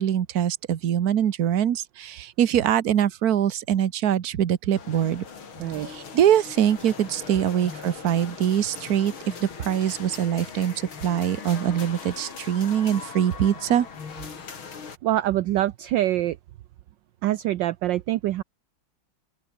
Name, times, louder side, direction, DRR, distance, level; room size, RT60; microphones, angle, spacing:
voice 1, 0.0-5.2 5.9-9.1 9.4-13.9, right 10 dB, 55° right, 1.4 m, -23 dB
sound 1, 4.7-15.0, left 6 dB, 90° left, 3.5 m, -40 dB
voice 2, 15.0-16.4 17.2-18.4, right 14 dB, 70° right, 1.3 m, -24 dB
open air
omnidirectional pair, 2.2 m